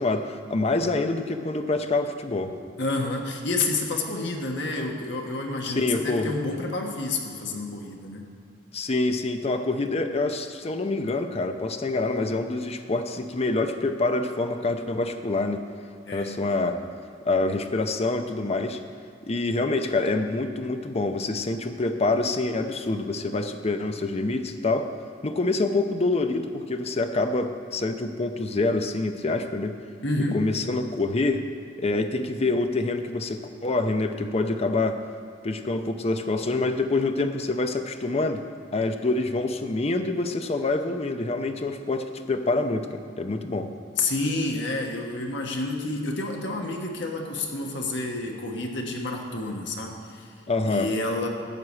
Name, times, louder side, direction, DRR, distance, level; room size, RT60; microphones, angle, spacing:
voice 1, 0.0-2.6 5.7-6.3 8.7-15.6 16.1-16.9 17.2-18.8 19.3-24.9 25.2-29.8 30.3-31.5 31.8-35.0 35.4-38.4 38.7-43.7 50.5-50.9, left 2 dB, 35° left, 7 dB, 0.7 m, -26 dB
voice 2, 2.8-8.2 16.1-16.4 30.0-30.4 44.0-50.4 50.6-51.3, left 2 dB, 70° left, 1 dB, 1.4 m, -29 dB
12.5 x 4.8 x 8.6 m, 2.5 s
head